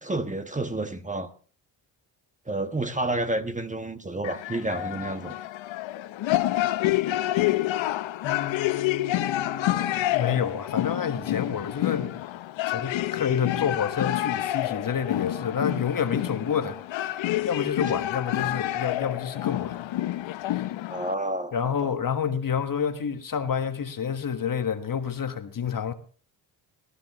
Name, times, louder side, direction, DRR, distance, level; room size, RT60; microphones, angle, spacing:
voice 1, 0.0-1.3 2.5-5.3 20.9-22.0, right 2 dB, 15° right, 1.3 m, -30 dB
sound 1, 4.2-21.1, left 15 dB, 65° left, 0.9 m, -28 dB
voice 2, 8.2-12.2 12.7-19.9 20.5-20.6 21.5-25.9, left 7 dB, 40° left, 1.4 m, -29 dB
19.5 x 13.0 x 3.0 m
supercardioid pair, 55°, 49 cm